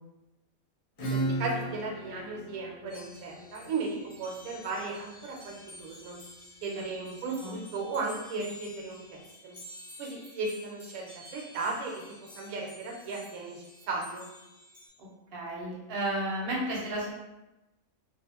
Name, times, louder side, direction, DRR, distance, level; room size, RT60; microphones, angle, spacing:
Acoustic guitar / Strum, 1.0-6.4, right 2 dB, 65° left, 0.9 m, -37 dB
voice 1, 1.1-6.2 6.6-9.5 10.0-11.1 11.3-12.0 12.4-14.3, right 3 dB, 75° right, -1 dB, 1.0 m, -36 dB
sound 1, 2.9-14.9, left 1 dB, 30° left, 0.6 m, -51 dB
voice 2, 15.3-17.1, right 1 dB, 50° right, -4 dB, 0.8 m, -33 dB
2.5 x 2.3 x 2.8 m, 0.99 s
omnidirectional pair, 1.5 m